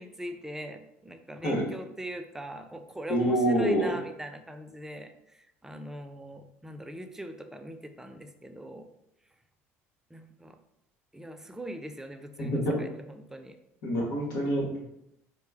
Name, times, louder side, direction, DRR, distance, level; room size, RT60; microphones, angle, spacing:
voice 1, 0.0-8.9 10.1-10.6 11.1-13.6, right 1 dB, 5° right, 7 dB, 0.4 m, -41 dB
voice 2, 3.1-3.9 12.4-12.8 13.8-14.8, equal, 60° left, -2 dB, 1.1 m, -26 dB
4.2 x 2.2 x 3.3 m, 0.82 s
figure-of-eight pair, 60°, 7 cm